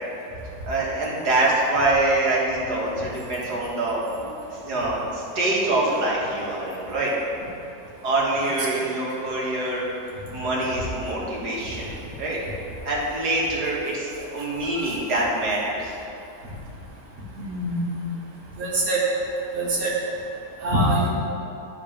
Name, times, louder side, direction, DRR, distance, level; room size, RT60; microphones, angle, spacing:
voice 1, 0.6-4.0 4.5-7.1 8.0-9.8 10.3-11.9 12.2-12.4 12.8-16.0, right 2 dB, 85° right, -5 dB, 2.2 m, -25 dB
voice 2, 17.4-17.9 18.6-19.0 19.5-19.9 20.6-21.1, right 1 dB, 65° right, -4 dB, 2.0 m, -24 dB
12.0 x 4.1 x 5.1 m, 2.8 s
omnidirectional pair, 1.7 m